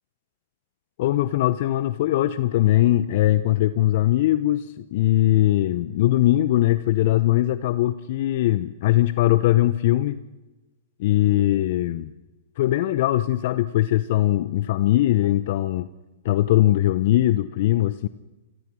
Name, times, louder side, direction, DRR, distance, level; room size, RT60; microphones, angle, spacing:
voice 1, 1.0-10.2 11.0-12.1 12.6-15.9 16.2-18.1, left 14 dB, 55° left, 15 dB, 0.9 m, -20 dB
28.0 x 23.0 x 6.4 m, 1.1 s
figure-of-eight pair, 105°, 0 cm